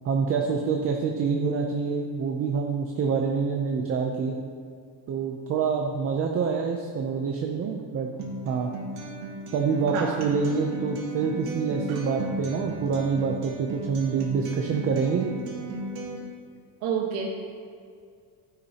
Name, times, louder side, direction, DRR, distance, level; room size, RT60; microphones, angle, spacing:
voice 1, 0.0-4.3 5.1-8.1 8.4-8.7 9.5-15.2, right 5 dB, 30° right, 2 dB, 0.4 m, -26 dB
Acoustic guitar, 8.2-16.2, right 1 dB, 50° right, 1.6 m, -35 dB
voice 2, 16.8-17.3, right 7 dB, 85° right, -1 dB, 1.3 m, -28 dB
11.5 x 9.7 x 2.8 m, 2.2 s
cardioid pair, 175°, 49 cm